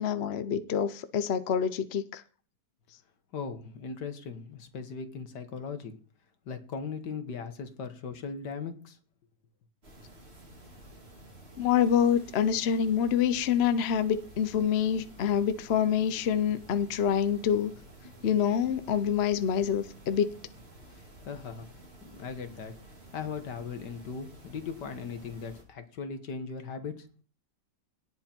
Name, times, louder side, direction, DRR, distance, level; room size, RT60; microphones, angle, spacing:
voice 1, 0.0-2.2 11.6-17.7 18.2-20.3, left 8 dB, 50° left, 12 dB, 0.8 m, -26 dB
voice 2, 3.3-6.0 6.5-9.0 21.3-21.7 22.0-22.7 23.1-27.1, left 5 dB, 80° left, 8 dB, 2.1 m, -38 dB
sound 1, 9.8-25.6, right 1 dB, 35° right, 3.4 m, -52 dB
17.5 x 8.1 x 4.5 m, 0.40 s
omnidirectional pair, 1.8 m